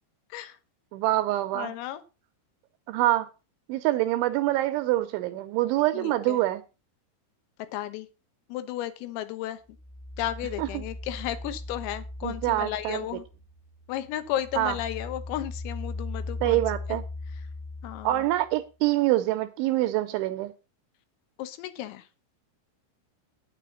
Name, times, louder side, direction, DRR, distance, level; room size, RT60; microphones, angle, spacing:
voice 1, 0.9-1.7 2.9-3.3 3.7-6.6 10.6-10.7 12.2-13.1 14.6-14.7 16.4-17.0 18.0-20.5, right 16 dB, 80° right, 2.8 m, -25 dB
voice 2, 1.5-2.0 5.9-6.4 7.7-8.1 8.5-9.6 10.2-13.3 13.9-16.6 16.9-17.0 17.8-18.3 21.4-22.1, left 13 dB, 90° left, 3.8 m, -34 dB
sound 1, 9.7-13.6 14.0-18.5, left 2 dB, 70° left, 3.3 m, -38 dB
9.7 x 8.4 x 5.5 m
omnidirectional pair, 5.9 m